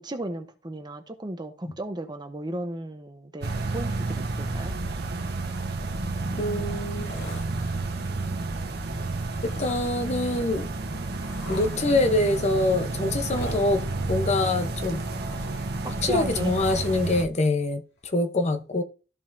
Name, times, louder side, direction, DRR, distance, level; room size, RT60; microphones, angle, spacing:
voice 1, 0.0-4.7 15.8-16.5, right 1 dB, 25° right, 0.8 m, -35 dB
sound 1, 3.4-17.2, right 3 dB, 60° right, 1.1 m, -31 dB
voice 2, 6.4-7.1 9.4-10.7 11.5-15.0 15.8-18.8, left 2 dB, 40° left, 0.8 m, -25 dB
sound 2, 6.8-7.9 9.0-9.8 10.6-11.8 13.1-13.7 14.7-15.8 16.1-17.0 18.1-18.2, left 1 dB, 65° left, 2.6 m, -43 dB
13.5 x 5.4 x 2.6 m
head